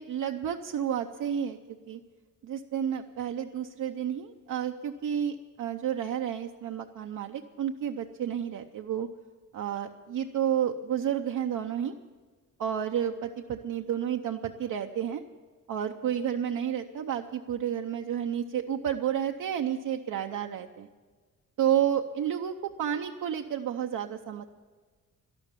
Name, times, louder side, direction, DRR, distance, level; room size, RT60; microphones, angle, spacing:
voice 1, 0.0-1.6 1.9-2.0 2.4-9.1 9.5-11.9 12.6-15.2 15.7-20.9 21.6-24.5, right 9 dB, 75° right, 3 dB, 0.7 m, -31 dB
12.5 x 12.5 x 7.4 m, 1.4 s
wide cardioid pair, 130°, 32 cm